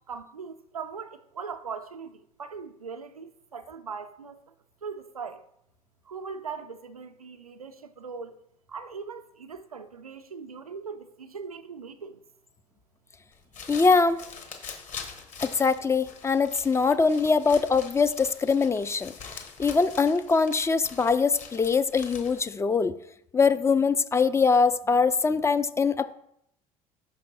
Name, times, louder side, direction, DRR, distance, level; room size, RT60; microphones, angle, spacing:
voice 1, 0.1-4.4 4.8-5.4 6.1-8.4 8.7-12.2, right 5 dB, 85° right, 0.4 m, -40 dB
sound 1, 13.3-22.6, left 5 dB, 40° left, 1.2 m, -44 dB
voice 2, 13.7-14.2 15.4-19.1 19.6-23.0 23.3-26.1, left 4 dB, 15° left, 0.3 m, -23 dB
5.6 x 5.3 x 4.0 m
figure-of-eight pair, 60°, 18 cm